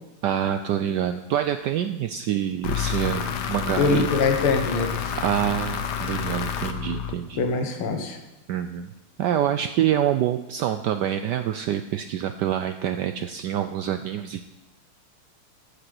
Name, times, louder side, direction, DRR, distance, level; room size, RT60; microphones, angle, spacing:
voice 1, 0.2-4.1 5.1-7.4 8.5-8.9 9.2-14.5, right 10 dB, 85° right, 9 dB, 0.9 m, -26 dB
sound 1, 2.6-7.6, left 8 dB, 60° left, 1.2 m, -29 dB
voice 2, 3.8-5.2 7.4-8.2, left 4 dB, 75° left, 5 dB, 2.2 m, -23 dB
8.9 x 8.2 x 7.8 m, 0.98 s
omnidirectional pair, 2.4 m